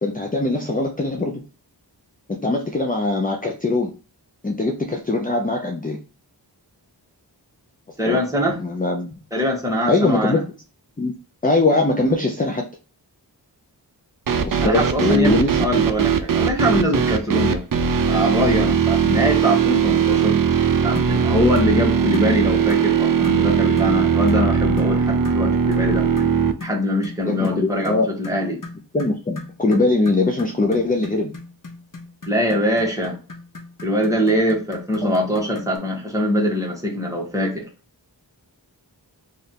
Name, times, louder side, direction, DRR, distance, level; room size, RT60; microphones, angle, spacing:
voice 1, 0.0-1.4 2.3-3.9 4.4-6.0 8.0-8.2 8.6-9.1 9.9-10.4 11.0-11.1 11.4-12.6 14.4-15.6 27.3-28.1 28.9-31.3 35.0-35.1, left 2 dB, 20° left, 2 dB, 0.6 m, -21 dB
voice 2, 8.0-8.6 9.3-10.4 14.6-17.6 18.1-20.4 20.8-26.1 26.6-28.6 32.3-33.1 33.8-37.7, equal, 10° right, -2 dB, 1.4 m, -22 dB
sound 1, 14.3-26.5, right 7 dB, 50° right, 0.5 m, -19 dB
sound 2, 21.0-21.2 21.6-21.8 22.1-22.4 22.7-22.9 23.2-23.5 23.8-24.0 24.3-24.5 24.8-25.0 25.3-25.4 25.7-25.9 26.2-35.8, left 3 dB, 50° left, 0.9 m, -37 dB
3.2 x 2.5 x 4.2 m, 0.36 s
wide cardioid pair, 45°, 42 cm